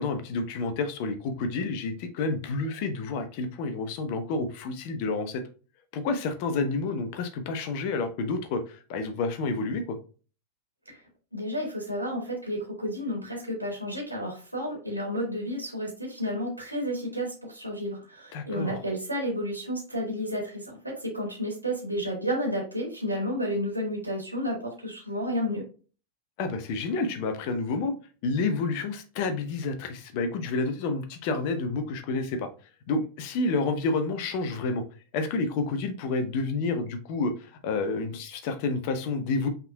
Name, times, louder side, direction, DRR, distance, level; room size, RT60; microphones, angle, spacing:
voice 1, 0.0-5.4 5.9-10.0 18.3-18.8 26.4-27.9 28.2-32.5 32.9-34.8 35.1-39.5, left 3 dB, 45° left, 0.7 m, -29 dB
voice 2, 11.3-25.6, equal, 90° right, 2.0 m, -31 dB
5.6 x 3.7 x 2.3 m
figure-of-eight pair, 90°, 0 cm